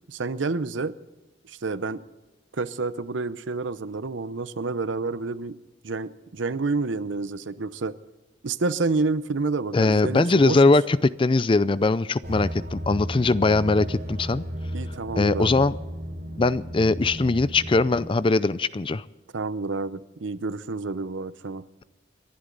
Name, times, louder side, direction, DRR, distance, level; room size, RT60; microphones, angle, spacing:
voice 1, 0.1-0.9 1.5-2.0 2.5-5.6 5.8-7.9 8.4-10.6 14.7-15.6 19.3-21.6, right 3 dB, 80° right, 15 dB, 0.7 m, -29 dB
voice 2, 9.7-14.4 15.2-15.7 16.4-19.0, left 3 dB, 25° left, 17 dB, 0.4 m, -21 dB
sound 1, 12.2-18.1, equal, 55° right, 4.7 m, -34 dB
30.0 x 11.5 x 4.0 m, 1.2 s
head